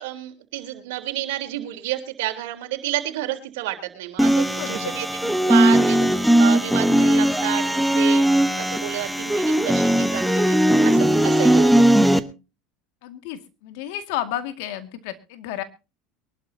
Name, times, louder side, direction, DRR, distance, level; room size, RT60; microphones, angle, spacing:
voice 1, 0.0-12.0, right 14 dB, 80° right, 5 dB, 3.4 m, -30 dB
sound 1, 4.2-12.2, right 1 dB, ahead, 1.1 m, -18 dB
voice 2, 4.5-5.0 13.0-15.6, left 12 dB, 75° left, 10 dB, 2.1 m, -32 dB
23.0 x 12.0 x 2.8 m, 0.30 s
supercardioid pair, 105°, 0 cm